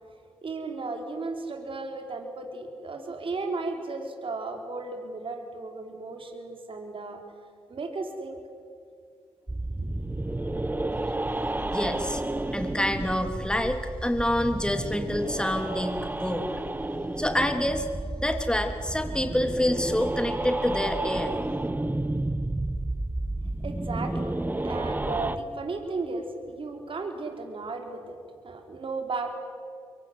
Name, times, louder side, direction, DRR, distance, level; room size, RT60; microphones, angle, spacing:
voice 1, 0.4-7.2 7.7-8.4 9.8-9.9 23.6-28.2 28.4-29.3, right 3 dB, 50° right, 3 dB, 4.1 m, -35 dB
sound 1, 9.5-25.4, right 2 dB, 15° right, 1.3 m, -31 dB
voice 2, 11.7-12.2 12.5-16.5 17.2-17.9 18.2-21.4, left 1 dB, 10° left, 6 dB, 3.2 m, -27 dB
24.0 x 24.0 x 9.7 m, 2.2 s
supercardioid pair, 50°, 11 cm